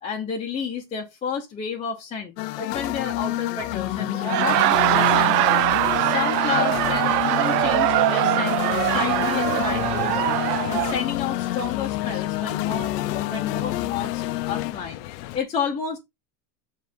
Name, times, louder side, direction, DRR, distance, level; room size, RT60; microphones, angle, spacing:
voice 1, 0.0-4.6 4.9-5.7 6.0-10.4 10.7-16.0, left 6 dB, 15° left, 0.8 m, -31 dB
sound 1, 2.4-14.7, left 16 dB, 85° left, 0.8 m, -28 dB
Laughter, 4.1-11.0, right 17 dB, 80° right, 0.6 m, -22 dB
sound 2, 8.7-15.4, left 16 dB, 50° left, 0.6 m, -37 dB
7.8 x 3.8 x 5.1 m
supercardioid pair, 170°, 47 cm